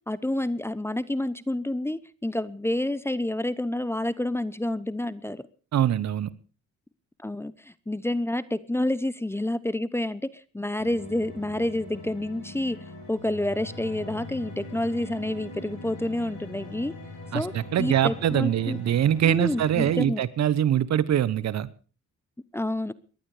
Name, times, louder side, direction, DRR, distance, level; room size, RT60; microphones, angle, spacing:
voice 1, 0.1-5.4 7.2-12.8 13.1-16.9 17.3-17.5 17.8-18.8 19.2-20.2 22.5-22.9, left 1 dB, 10° left, 18 dB, 0.8 m, -29 dB
voice 2, 5.7-6.3 17.3-21.7, right 10 dB, 60° right, 18 dB, 1.0 m, -23 dB
sound 1, 10.8-20.0, left 2 dB, 80° left, 7.5 m, -42 dB
19.0 x 11.5 x 4.9 m, 0.37 s
cardioid pair, 90°, 30 cm